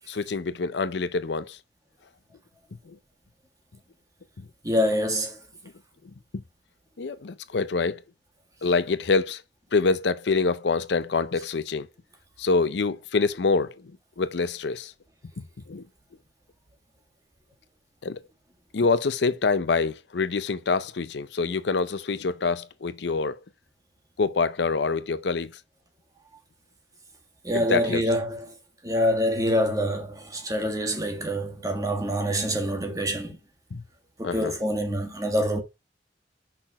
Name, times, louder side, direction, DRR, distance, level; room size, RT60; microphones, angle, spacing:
voice 1, 0.1-1.6 2.9-3.0 4.4-4.5 7.0-8.0 8.6-9.4 9.7-11.9 12.4-13.9 14.2-14.9 15.4-15.8 18.0-18.2 18.7-23.4 24.2-25.5 27.5-28.0 33.7-33.8 34.2-34.5, left 4 dB, 70° left, 0.6 m, -26 dB
voice 2, 4.6-5.4 27.4-28.5 28.8-33.4 34.2-35.6, equal, 20° right, 1.6 m, -26 dB
5.8 x 4.3 x 5.8 m
head